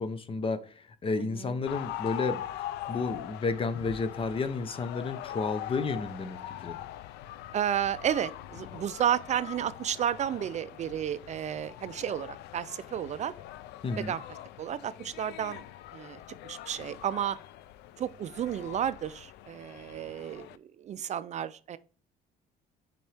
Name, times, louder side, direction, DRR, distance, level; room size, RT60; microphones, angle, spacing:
voice 1, 0.0-2.4 2.9-6.8 13.8-14.2, left 4 dB, 30° left, 0.8 m, -32 dB
voice 2, 1.2-1.5 7.5-13.3 14.0-14.2 14.6-15.6 15.9-17.4 18.0-21.8, right 10 dB, 45° right, 0.4 m, -32 dB
sound 1, 1.7-20.6, left 13 dB, 85° left, 0.5 m, -42 dB
7.5 x 5.3 x 3.4 m
cardioid pair, 110°, 17 cm